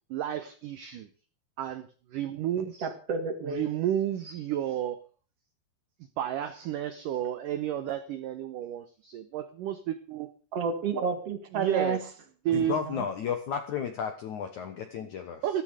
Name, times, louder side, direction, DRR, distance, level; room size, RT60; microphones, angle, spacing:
voice 1, 0.1-1.1 1.6-2.9 3.4-5.0 6.2-10.3 11.5-12.0 12.5-12.8 15.4-15.6, right 10 dB, 85° right, 11 dB, 1.9 m, -31 dB
voice 2, 2.8-3.7 10.5-12.0 12.8-13.1, right 5 dB, 45° right, 7 dB, 2.4 m, -30 dB
voice 3, 12.5-15.4, left 7 dB, 70° left, 7 dB, 1.8 m, -33 dB
13.5 x 13.5 x 4.9 m, 0.39 s
omnidirectional pair, 5.0 m